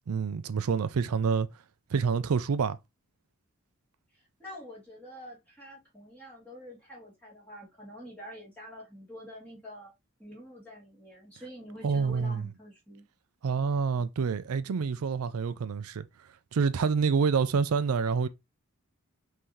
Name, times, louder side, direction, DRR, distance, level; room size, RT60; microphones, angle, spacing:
voice 1, 0.1-1.5 1.9-2.8 11.8-12.5 13.4-16.0 16.5-18.3, right 5 dB, 85° right, 0.4 m, -27 dB
voice 2, 4.1-9.9 10.2-13.1, equal, 10° left, 2.4 m, -47 dB
5.6 x 2.7 x 3.1 m
head